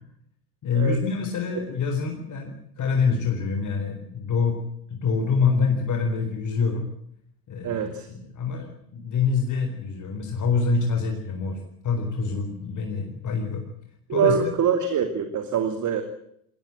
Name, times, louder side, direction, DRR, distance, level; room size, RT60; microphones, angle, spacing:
voice 1, 0.6-4.6 4.9-6.9 7.5-13.6 14.1-14.5, left 5 dB, 40° left, 4 dB, 4.4 m, -26 dB
voice 2, 7.6-8.1 14.1-16.0, right 7 dB, 40° right, 8 dB, 2.8 m, -24 dB
21.0 x 18.0 x 8.9 m, 0.71 s
hypercardioid pair, 85°, 45 cm